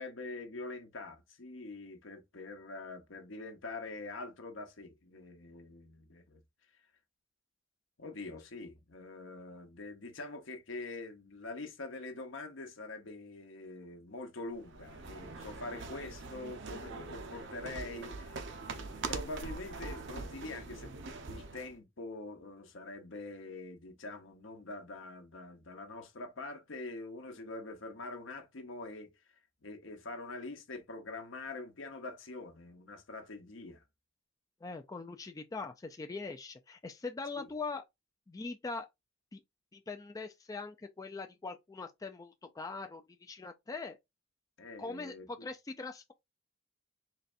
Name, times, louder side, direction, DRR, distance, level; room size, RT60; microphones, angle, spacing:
voice 1, 0.0-6.4 8.0-18.4 18.7-20.9 21.3-29.1 29.6-33.8 37.3-37.5 44.6-45.5, left 2 dB, 70° left, 0.9 m, -44 dB
sound 1, 14.6-21.7, right 3 dB, 65° right, 0.6 m, -43 dB
voice 2, 34.6-37.8 38.3-38.9 39.3-39.4 39.7-44.0 44.8-46.1, left 3 dB, 20° left, 0.3 m, -42 dB
4.0 x 3.2 x 2.5 m
head